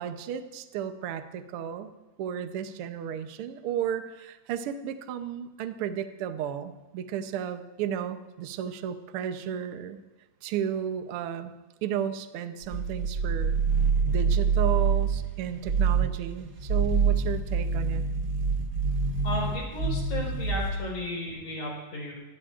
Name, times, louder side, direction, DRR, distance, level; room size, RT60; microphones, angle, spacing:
voice 1, 0.0-1.9 2.2-10.0 10.4-11.5 11.8-13.5 14.0-18.1, right 9 dB, 70° right, 8 dB, 1.3 m, -33 dB
sound 1, 12.6-15.3 15.6-16.2 16.6-20.8, right 5 dB, 45° right, 1.3 m, -26 dB
voice 2, 19.2-22.1, left 1 dB, 75° left, -2 dB, 6.0 m, -34 dB
23.5 x 18.0 x 2.5 m, 1.1 s
omnidirectional pair, 3.5 m